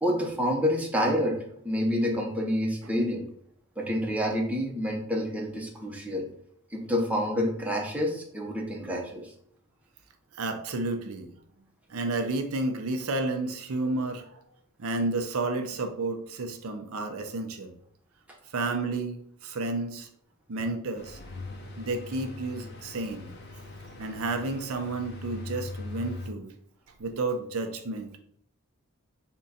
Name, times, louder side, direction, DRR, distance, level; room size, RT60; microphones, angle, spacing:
voice 1, 0.0-3.3 3.8-6.3 6.7-9.3, equal, 5° right, -1 dB, 0.6 m, -28 dB
voice 2, 10.3-11.3 11.9-14.4 14.8-17.7 18.5-20.1 20.5-21.2 21.8-23.3 24.0-26.5 27.0-28.2, right 2 dB, 85° right, 5 dB, 0.5 m, -31 dB
sound 1, 21.0-26.3, left 2 dB, 50° left, 0.7 m, -41 dB
3.6 x 2.2 x 4.0 m, 0.67 s
head